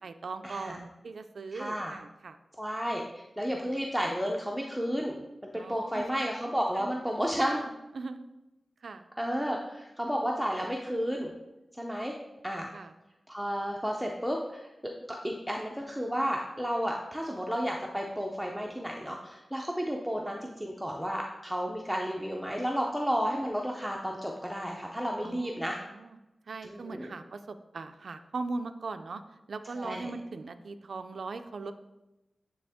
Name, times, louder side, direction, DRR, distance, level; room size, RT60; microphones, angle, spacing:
voice 1, 0.0-2.4 5.5-6.3 6.7-7.3 7.9-8.3 8.8-9.0 12.7-12.9 25.2-26.2 26.5-29.2 29.5-31.7, right 3 dB, 75° right, 9 dB, 0.4 m, -40 dB
voice 2, 1.5-1.9 2.6-5.2 5.5-7.6 9.2-11.3 11.8-12.1 12.4-12.7 13.3-14.7 15.1-25.8 26.6-27.1 29.8-30.1, equal, ahead, 0 dB, 0.5 m, -32 dB
9.4 x 3.4 x 3.5 m, 0.99 s
wide cardioid pair, 95°, 0 cm